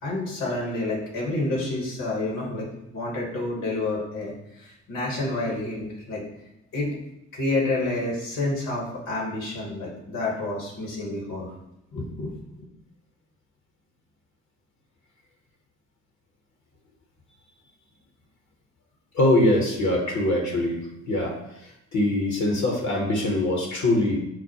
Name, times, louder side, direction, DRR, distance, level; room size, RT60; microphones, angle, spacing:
voice 1, 0.0-6.2 6.7-7.0 7.3-11.5 11.9-12.7, left 2 dB, 65° left, -2 dB, 1.4 m, -29 dB
voice 2, 19.1-20.8 21.1-21.3 21.9-24.2, left 1 dB, 50° left, 0 dB, 1.1 m, -22 dB
6.1 x 2.1 x 2.8 m, 0.83 s
figure-of-eight pair, 45°, 37 cm